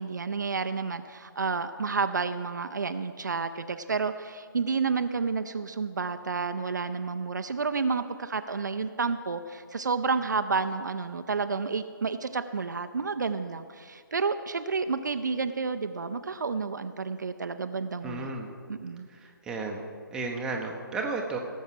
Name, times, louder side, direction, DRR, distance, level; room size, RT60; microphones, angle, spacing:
voice 1, 0.0-18.3 18.7-19.1, right 4 dB, 55° right, 10 dB, 0.5 m, -30 dB
voice 2, 18.0-18.5 19.1-19.8 20.1-21.4, right 3 dB, 5° right, 0 dB, 0.8 m, -33 dB
17.5 x 7.2 x 5.9 m, 2.1 s
figure-of-eight pair, 140°, 12 cm